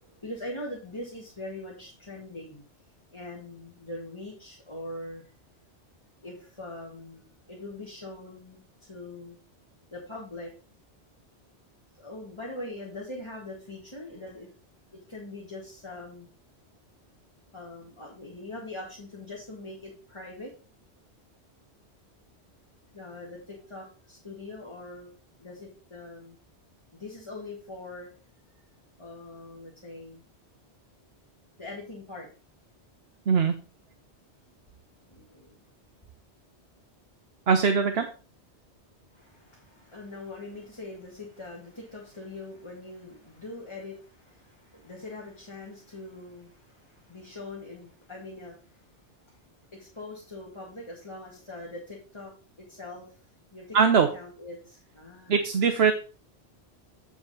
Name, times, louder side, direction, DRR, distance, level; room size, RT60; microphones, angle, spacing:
voice 1, 0.0-2.6 3.1-5.3 6.2-9.4 9.9-10.5 11.9-14.5 15.1-16.3 17.5-20.5 22.9-25.1 25.4-26.4 26.9-28.1 29.0-30.2 31.6-32.3 35.0-35.6 39.1-48.8 49.7-52.3 52.6-53.2 53.5-55.4, left 2 dB, 25° left, -3 dB, 2.2 m, -42 dB
voice 2, 37.5-38.1 53.7-54.1 55.3-55.9, right 6 dB, 70° right, 6 dB, 1.1 m, -21 dB
9.0 x 4.8 x 5.5 m, 0.36 s
omnidirectional pair, 1.1 m